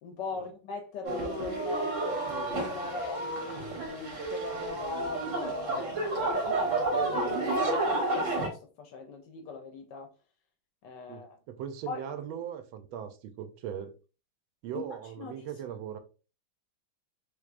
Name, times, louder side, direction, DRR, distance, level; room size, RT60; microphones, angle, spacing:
voice 1, 0.0-10.1 10.8-11.4 11.9-12.1 14.7-14.8 15.2-15.4, left 4 dB, 75° left, 1.1 m, -40 dB
sound 1, 1.0-8.5, right 2 dB, 45° right, 1.1 m, -31 dB
voice 2, 11.1-13.9 14.6-16.0, right 9 dB, 80° right, 1.3 m, -39 dB
3.4 x 3.3 x 2.4 m
omnidirectional pair, 2.3 m